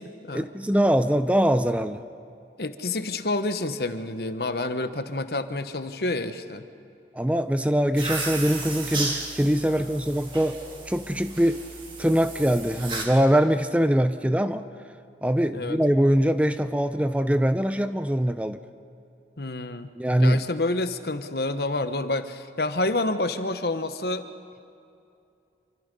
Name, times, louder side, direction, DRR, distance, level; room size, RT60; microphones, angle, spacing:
voice 1, 0.3-2.0 7.1-10.6 10.9-11.6 12.0-14.7 15.2-18.6 20.0-20.4, equal, 10° right, 10 dB, 0.5 m, -22 dB
voice 2, 2.6-6.7 9.7-9.8 15.5-15.8 19.4-19.9 20.2-24.2, left 2 dB, 60° left, 9 dB, 1.2 m, -28 dB
sound 1, 8.0-13.0, right 3 dB, 30° right, 3.2 m, -34 dB
27.5 x 24.5 x 5.4 m, 2.6 s
head